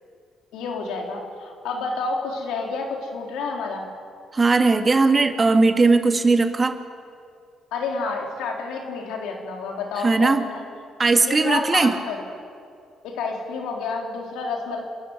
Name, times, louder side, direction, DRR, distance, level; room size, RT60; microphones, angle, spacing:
voice 1, 0.5-3.9 7.7-10.6 11.2-12.2 13.0-14.8, left 4 dB, 75° left, 1 dB, 3.8 m, -29 dB
voice 2, 4.3-6.8 10.0-10.4 11.0-11.9, right 3 dB, 35° right, 7 dB, 2.0 m, -18 dB
27.0 x 13.5 x 9.5 m, 2.3 s
hypercardioid pair, 50°, 0 cm